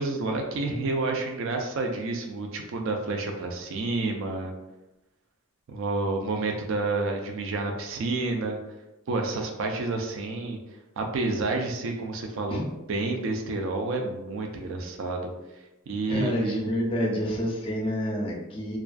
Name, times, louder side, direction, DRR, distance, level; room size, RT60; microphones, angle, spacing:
voice 1, 0.0-4.6 5.7-8.6 9.1-10.6 11.0-12.6 12.9-15.3 15.9-16.6, right 3 dB, 65° right, 2 dB, 0.3 m, -29 dB
voice 2, 16.1-18.8, equal, 25° left, -1 dB, 0.4 m, -28 dB
2.3 x 2.3 x 2.4 m, 0.99 s
head